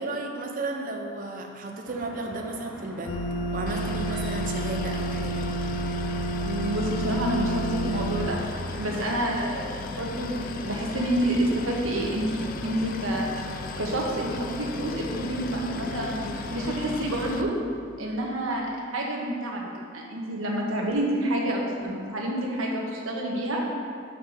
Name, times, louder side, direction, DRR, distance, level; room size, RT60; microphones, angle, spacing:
voice 1, 0.0-3.2 3.5-5.5 18.0-18.2, right 2 dB, 40° right, 2 dB, 0.7 m, -34 dB
sound 1, 1.9-17.0, equal, 5° right, 0.7 m, -44 dB
sound 2, 3.1-8.3, right 2 dB, 85° left, 0.6 m, -30 dB
Boat Water vehicle, 3.7-17.4, left 5 dB, 45° left, 0.4 m, -37 dB
voice 2, 6.4-8.4 8.7-13.5 13.8-17.5 18.0-18.7 18.9-19.6 19.9-23.6, right 1 dB, 80° right, -1 dB, 1.2 m, -28 dB
5.7 x 4.6 x 6.5 m, 2.2 s
head